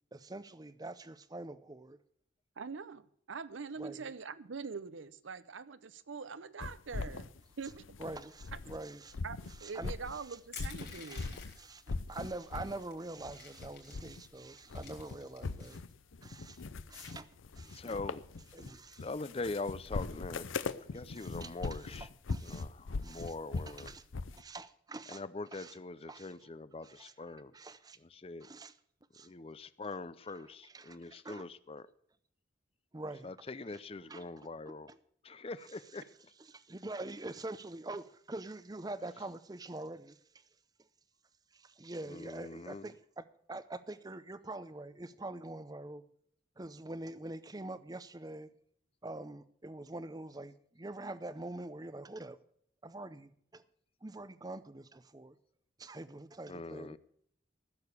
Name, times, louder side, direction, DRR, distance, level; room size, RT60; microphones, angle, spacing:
voice 1, 0.1-2.0 3.8-4.1 8.0-9.2 9.5-10.4 10.8-15.8 16.2-16.6 16.9-18.0 18.5-19.1 21.1-22.7 23.0-23.3 23.7-24.0 24.3-25.2 25.5-25.7 26.1-26.3 26.8-27.1 27.5-28.0 28.4-28.7 29.1-29.3 30.7-31.5 32.9-33.3 33.7-33.8 34.1-34.2 34.9-35.0 36.5-40.5 40.8-40.9 41.5-46.0 46.6-48.5 49.0-52.4 52.8-53.6 54.0-55.4 55.8-57.0, right 2 dB, 20° right, 0.6 m, -45 dB
voice 2, 2.6-7.3 7.6-7.9 9.2-11.4, right 5 dB, 75° right, 0.7 m, -44 dB
sound 1, 6.6-8.8 9.1-11.6 11.9-12.8 13.2-14.3 14.6-24.4, left 3 dB, 85° left, 0.7 m, -41 dB
Crushing, 10.5-11.7 12.5-12.6 12.9-14.1 14.6-15.7, left 8 dB, 55° left, 3.8 m, -50 dB
voice 3, 17.7-18.2 19.0-20.5 20.8-22.1 22.4-23.9 25.1-27.5 28.0-28.5 29.2-31.9 33.2-34.9 35.2-36.1 42.0-42.9 56.5-57.0, left 3 dB, 30° left, 0.5 m, -43 dB
14.5 x 7.0 x 8.2 m
head